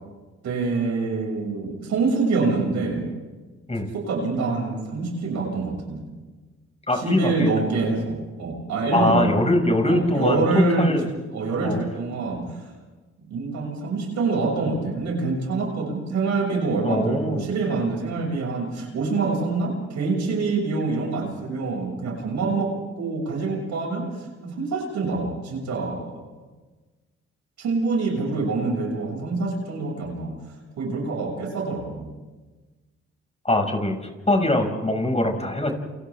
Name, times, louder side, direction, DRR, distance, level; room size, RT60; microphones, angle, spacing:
voice 1, 0.4-3.0 3.9-6.1 7.0-9.5 9.9-11.0 11.3-12.6 13.3-26.3 27.6-30.4 30.8-32.1, right 3 dB, 70° right, 0 dB, 6.9 m, -26 dB
voice 2, 6.9-7.5 8.9-11.1 11.6-11.8 16.8-17.4 33.4-34.0 34.3-35.7, left 1 dB, 20° left, 3 dB, 6.3 m, -22 dB
29.5 x 28.5 x 3.7 m, 1.3 s
hypercardioid pair, 45°, 30 cm